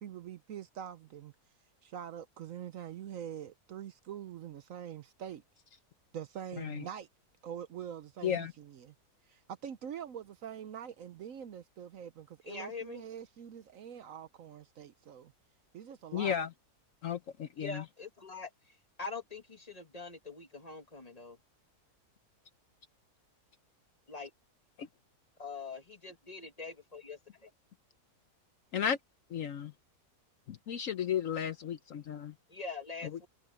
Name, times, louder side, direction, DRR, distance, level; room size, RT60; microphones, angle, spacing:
voice 1, 0.0-1.3 1.8-5.4 6.1-7.1 7.4-8.9 9.3-15.3 15.7-16.4, right 9 dB, 65° right, 1.0 m, -44 dB
voice 2, 12.5-13.0 17.6-18.5 19.0-21.4 24.1-24.3 25.4-27.2 32.5-33.3, left 4 dB, 25° left, 1.7 m, -43 dB
voice 3, 16.1-16.5 17.0-17.8 24.8-24.9 28.7-29.0 29.3-29.7 30.5-32.3 33.0-33.2, left 8 dB, 60° left, 1.1 m, -34 dB
omnidirectional pair, 1.7 m